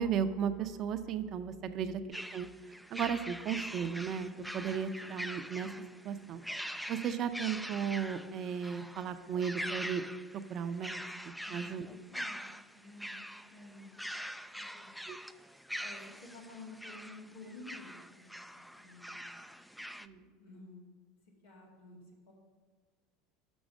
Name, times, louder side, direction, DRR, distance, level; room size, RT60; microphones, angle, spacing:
voice 1, 0.0-2.5 2.9-5.7 6.0-6.4 6.9-10.0 10.5-11.9 15.1-15.2 20.0-20.3, right 7 dB, 50° right, 9 dB, 0.6 m, -35 dB
sound 1, 2.1-20.1, equal, ahead, 0.3 m, -44 dB
voice 2, 11.4-12.4 12.8-13.2 13.5-13.9 14.5-15.0 15.8-18.2 18.5-19.3 20.0-20.9 21.4-22.0 22.3-22.4, left 2 dB, 90° left, -3 dB, 2.3 m, -52 dB
6.2 x 6.2 x 6.3 m, 1.5 s
hypercardioid pair, 90°, 0 cm